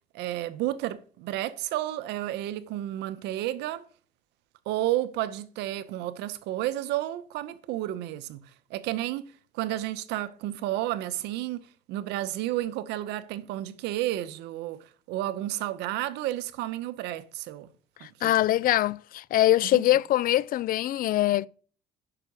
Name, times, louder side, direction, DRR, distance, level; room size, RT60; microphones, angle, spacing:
voice 1, 0.1-3.8 4.7-8.4 8.7-11.6 11.9-17.7 18.2-18.3 19.6-19.8, right 14 dB, 90° right, 0.9 m, -31 dB
voice 2, 18.0-21.5, left 14 dB, 60° left, 0.4 m, -23 dB
9.8 x 5.9 x 6.2 m
cardioid pair, 110°, 17 cm